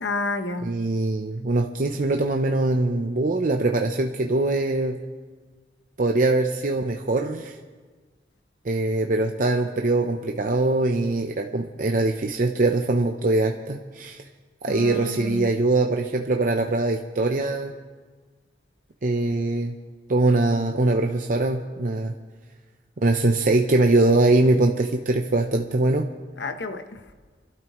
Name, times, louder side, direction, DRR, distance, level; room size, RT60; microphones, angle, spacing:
voice 1, 0.0-0.7 14.7-15.5 26.4-27.0, left 2 dB, 80° left, 1.0 m, -30 dB
voice 2, 0.6-5.0 6.0-7.6 8.6-14.2 14.6-17.7 19.0-19.7 20.1-22.1 23.0-26.1, right 2 dB, 50° right, 0.7 m, -22 dB
28.0 x 12.0 x 3.1 m
head